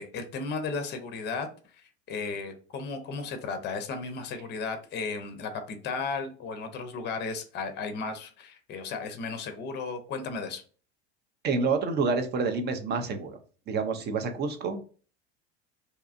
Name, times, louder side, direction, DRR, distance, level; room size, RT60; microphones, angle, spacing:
voice 1, 0.0-1.5 1.7-10.6, left 4 dB, 30° left, 7 dB, 0.6 m, -35 dB
voice 2, 11.4-13.4 13.7-14.8, right 4 dB, 30° right, 6 dB, 0.5 m, -28 dB
2.7 x 2.3 x 2.4 m, 0.39 s
hypercardioid pair, 85°, 34 cm